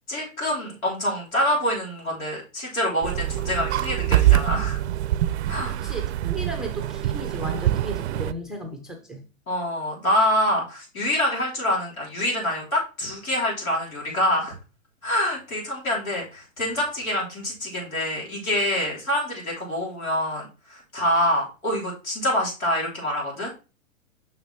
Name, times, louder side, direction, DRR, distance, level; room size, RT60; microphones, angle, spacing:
voice 1, 0.1-4.8 5.5-5.7 6.4-6.5 9.5-14.5 15.0-23.5, left 1 dB, 90° left, 3.7 m, -26 dB
sound 1, 3.0-8.3, right 13 dB, 55° right, 0.5 m, -24 dB
voice 2, 5.5-9.2, right 1 dB, ahead, 0.4 m, -35 dB
7.0 x 5.8 x 2.9 m
hypercardioid pair, 125°, 40 cm